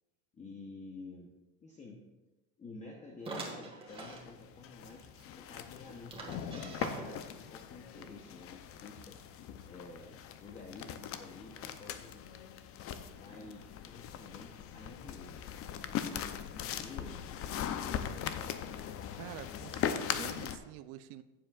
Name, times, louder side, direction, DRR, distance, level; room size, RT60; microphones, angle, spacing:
voice 1, 0.3-1.3 1.6-2.0 2.6-5.1 5.4-9.2 9.6-12.3 13.2-15.6 15.9-18.4, left 3 dB, 20° left, 0 dB, 0.9 m, -51 dB
sound 1, 3.3-4.3 4.8-4.9 5.2-5.3 6.1-7.4, right 3 dB, 15° right, 1.7 m, -43 dB
sound 2, 3.9-20.6, left 9 dB, 40° left, 0.6 m, -40 dB
voice 2, 19.2-21.2, right 13 dB, 65° right, 12 dB, 0.6 m, -47 dB
14.5 x 7.5 x 2.4 m, 1.1 s
supercardioid pair, 140°, 36 cm